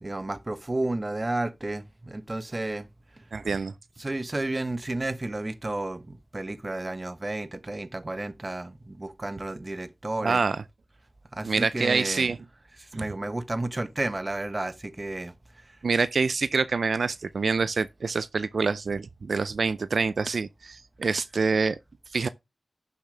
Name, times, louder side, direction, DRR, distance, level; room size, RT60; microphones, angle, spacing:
voice 1, 0.0-2.9 3.2-3.3 4.0-10.4 11.3-12.3 12.8-15.8, right 2 dB, 35° right, 1.1 m, -32 dB
voice 2, 3.3-3.7 10.2-10.6 11.4-12.4 15.8-21.8 22.1-22.3, right 4 dB, 80° right, 0.4 m, -26 dB
11.5 x 7.1 x 3.4 m
wide cardioid pair, 60°, 0 cm